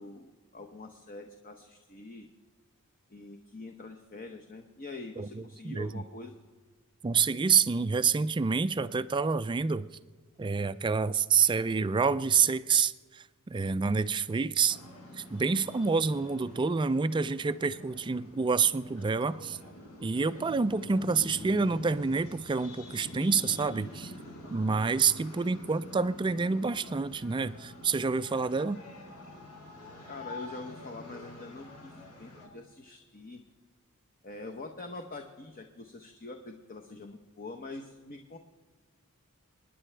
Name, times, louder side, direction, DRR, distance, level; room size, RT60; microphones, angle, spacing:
voice 1, 0.0-2.3 3.1-6.4 14.3-14.6 25.4-25.8 30.1-33.4 34.2-38.4, left 3 dB, 40° left, 4 dB, 0.9 m, -45 dB
voice 2, 5.2-6.0 7.0-9.9 10.4-14.8 15.2-19.6 20.0-24.1 24.5-28.8, right 5 dB, 20° right, 14 dB, 0.3 m, -28 dB
sound 1, 14.7-32.5, left 1 dB, 80° left, 4.2 m, -47 dB
28.0 x 10.0 x 3.3 m, 1.4 s
head